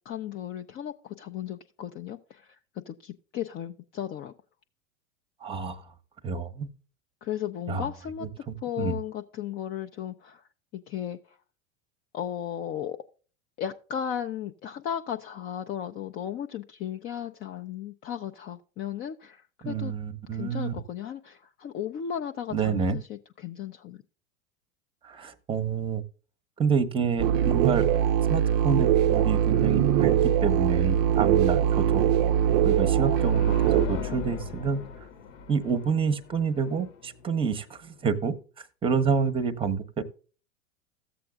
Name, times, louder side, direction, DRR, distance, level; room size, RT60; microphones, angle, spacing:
voice 1, 0.1-2.6 2.9-4.3 7.2-8.3 8.6-10.4 10.7-11.4 12.1-13.0 13.6-19.9 20.3-24.0, left 9 dB, 25° left, 5 dB, 0.4 m, -35 dB
voice 2, 5.4-5.9 6.2-6.7 7.7-7.9 8.5-9.0 19.6-20.7 22.5-23.0 25.0-26.0 26.6-27.9 28.3-30.1 30.4-32.1 32.6-34.9 35.5-40.0, right 6 dB, 15° right, 13 dB, 0.8 m, -28 dB
sound 1, 27.2-33.9, right 10 dB, 45° right, 0.5 m, -22 dB
sound 2, 29.5-38.3, left 4 dB, 65° left, 1.0 m, -40 dB
14.0 x 7.6 x 2.3 m, 0.37 s
hypercardioid pair, 100°, 40 cm